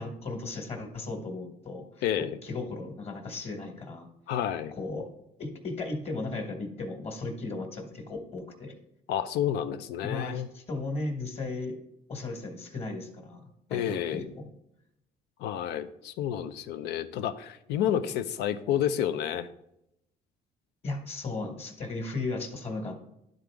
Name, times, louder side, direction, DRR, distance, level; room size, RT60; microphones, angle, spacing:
voice 1, 0.0-2.0 2.4-4.1 4.8-5.1 5.4-8.8 10.0-11.8 12.1-14.5 20.8-23.1, left 3 dB, 35° left, 4 dB, 1.5 m, -36 dB
voice 2, 2.0-2.4 4.3-4.7 9.1-10.5 13.7-14.3 15.4-19.5, left 10 dB, 80° left, 11 dB, 0.6 m, -30 dB
11.5 x 3.9 x 3.5 m, 0.81 s
cardioid pair, 110°, 17 cm